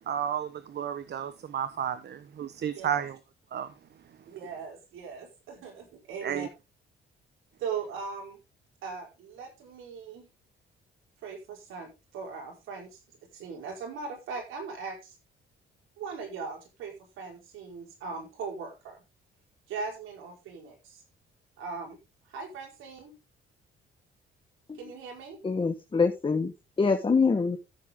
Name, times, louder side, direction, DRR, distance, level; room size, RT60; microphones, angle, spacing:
voice 1, 0.1-3.2 3.5-3.7 6.2-6.5, right 9 dB, 55° right, 1.1 m, -32 dB
voice 2, 4.2-6.5 7.6-8.4 8.8-10.3 11.2-13.0 13.3-15.1 16.0-19.0 19.7-21.0 21.6-22.0 22.3-23.1 24.8-25.4, right 5 dB, 90° right, 4.9 m, -39 dB
voice 3, 25.4-26.5 26.8-27.6, left 4 dB, 25° left, 1.3 m, -24 dB
14.0 x 7.6 x 3.7 m
cardioid pair, 90°, 20 cm